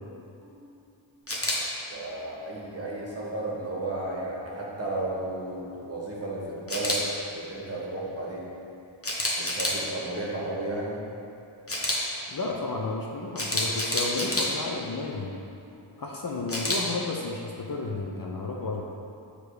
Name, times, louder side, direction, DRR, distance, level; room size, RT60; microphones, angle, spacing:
voice 1, 0.4-0.7 1.9-7.0 7.3-8.4 9.4-11.0, right 2 dB, 30° right, -5 dB, 1.4 m, -33 dB
Camera, 1.3-1.6 6.7-7.0 9.0-9.8 11.7-12.0 13.4-14.5 16.5-16.8, left 1 dB, 25° left, 1.0 m, -27 dB
voice 2, 12.3-15.3 16.0-18.8, left 3 dB, 45° left, -1 dB, 0.6 m, -32 dB
6.9 x 3.3 x 4.8 m, 2.7 s
wide cardioid pair, 55°, 50 cm